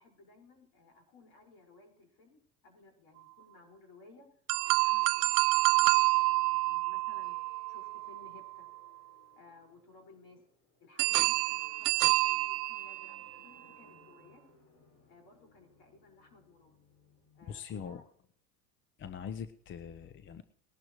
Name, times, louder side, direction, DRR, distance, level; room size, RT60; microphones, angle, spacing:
voice 1, 0.0-4.3 4.7-5.3 5.7-7.4 7.7-8.7 9.4-10.4 10.8-14.5 15.1-16.8 17.3-18.0, left 3 dB, 50° left, 3 dB, 5.2 m, -59 dB
sound 1, 4.5-8.6 11.0-13.3, right 23 dB, 60° right, 0.6 m, -28 dB
sound 2, 7.2-17.7, left 3 dB, 70° left, 5.7 m, -64 dB
voice 2, 17.5-18.0 19.0-20.4, left 7 dB, 25° left, 12 dB, 0.6 m, -42 dB
20.5 x 11.5 x 3.1 m, 0.64 s
hypercardioid pair, 100°, 47 cm